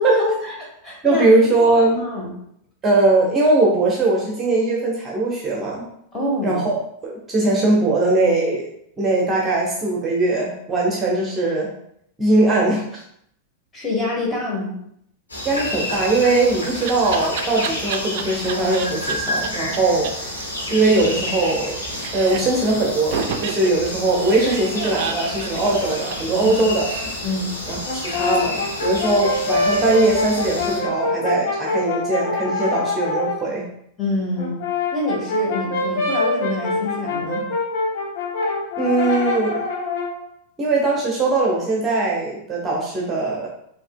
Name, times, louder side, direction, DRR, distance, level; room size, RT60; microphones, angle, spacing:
voice 1, 0.0-1.3 2.0-2.3 6.1-6.6 13.7-14.7 26.4-26.5 27.2-27.5 34.0-34.6 34.9-37.5, left 2 dB, 15° left, -4 dB, 1.5 m, -25 dB
voice 2, 1.0-2.0 2.8-5.8 6.4-6.8 7.0-8.7 9.0-11.7 12.2-13.0 15.4-20.1 20.7-21.8 22.1-26.9 27.7-33.6 38.8-39.5 40.6-43.5, right 2 dB, 20° right, -3 dB, 0.9 m, -20 dB
sound 1, 15.3-30.8, left 1 dB, 75° left, 1.2 m, -30 dB
Laughter, 16.2-19.1 19.4-19.5 19.7-19.8 20.0-20.1 20.4-21.7 22.0-22.6 23.1-26.9, right 7 dB, 50° right, 0.4 m, -30 dB
Brass instrument, 27.8-33.4 34.4-40.2, left 3 dB, 50° left, 1.0 m, -25 dB
5.2 x 2.9 x 2.2 m, 0.72 s
figure-of-eight pair, 90°, 0 cm